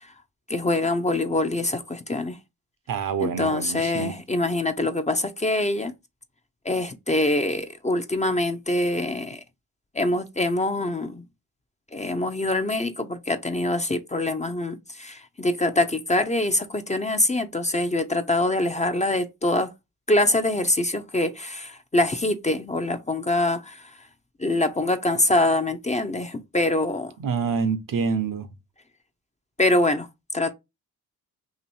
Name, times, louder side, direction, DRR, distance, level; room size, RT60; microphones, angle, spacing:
voice 1, 0.5-2.4 3.2-5.9 6.6-9.4 9.9-11.2 11.9-19.7 20.1-23.8 24.4-27.1 29.6-30.1 30.3-30.5, left 2 dB, 20° left, 0.6 m, -24 dB
voice 2, 2.9-4.1 27.2-28.5, right 6 dB, 60° right, 0.8 m, -26 dB
2.9 x 2.6 x 4.2 m
supercardioid pair, 50°, 38 cm